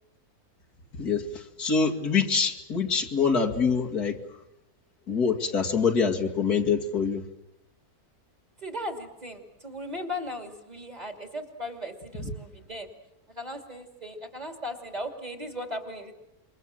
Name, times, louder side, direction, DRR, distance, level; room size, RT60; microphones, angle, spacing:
voice 1, 1.0-4.2 5.1-7.2 12.2-12.3, left 5 dB, 85° left, 1 dB, 2.8 m, -25 dB
voice 2, 8.6-12.9 13.3-16.1, left 1 dB, 25° right, 4 dB, 3.0 m, -37 dB
27.0 x 23.5 x 7.6 m, 0.90 s
omnidirectional pair, 1.6 m